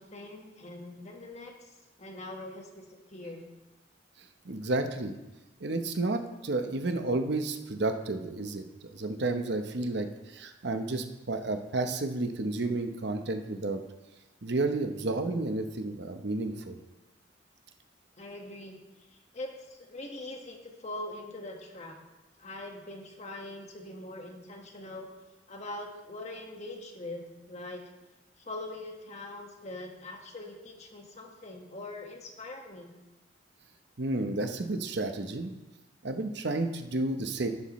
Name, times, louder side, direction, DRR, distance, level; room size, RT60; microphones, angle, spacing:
voice 1, 0.0-1.5 2.0-3.4 18.2-18.8 19.3-22.0 22.4-25.1 25.5-27.8 28.4-32.9, left 2 dB, 40° left, 1 dB, 1.6 m, -42 dB
voice 2, 4.4-5.1 5.6-8.6 8.9-13.8 14.4-16.8 34.0-35.5 36.0-37.5, right 2 dB, 65° right, 6 dB, 0.9 m, -31 dB
11.5 x 11.0 x 3.2 m, 1.1 s
head